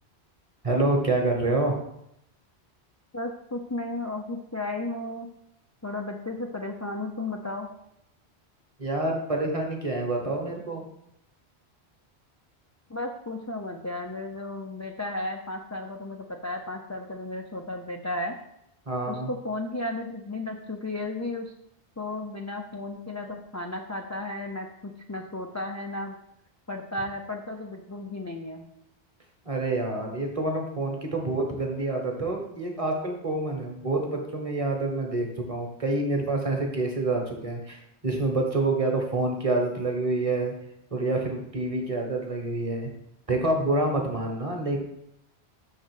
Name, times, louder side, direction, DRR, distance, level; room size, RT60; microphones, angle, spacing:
voice 1, 0.6-1.8 8.8-10.8 18.9-19.3 29.4-40.5 40.9-42.9 43.3-44.8, right 2 dB, 30° right, 2 dB, 1.3 m, -27 dB
voice 2, 3.1-5.3 5.8-7.7 12.9-18.3 19.1-21.5 22.0-26.2 26.7-28.7, left 2 dB, 25° left, 1 dB, 0.4 m, -34 dB
6.2 x 4.0 x 6.3 m, 0.78 s
omnidirectional pair, 1.1 m